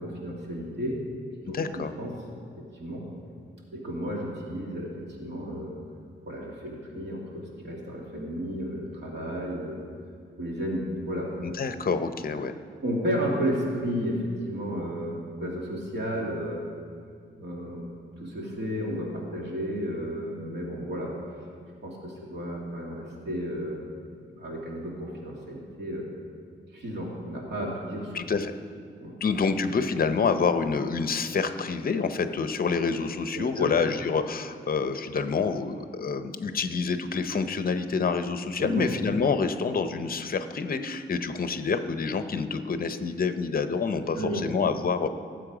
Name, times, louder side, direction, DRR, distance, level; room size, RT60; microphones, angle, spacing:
voice 1, 0.0-2.1 2.7-3.0 3.7-4.9 5.2-5.7 6.3-9.8 10.4-11.3 12.8-16.6 17.4-17.8 18.2-21.1 21.8-23.8 24.4-26.0 26.7-28.2 29.0-29.1 33.3-33.7 38.6-38.9 44.1-44.5, equal, 55° right, -3 dB, 2.5 m, -32 dB
voice 2, 1.4-1.9 11.4-12.5 28.1-28.5 29.2-45.1, left 5 dB, 45° left, 9 dB, 0.7 m, -27 dB
17.5 x 7.7 x 5.0 m, 2.2 s
wide cardioid pair, 150°, 21 cm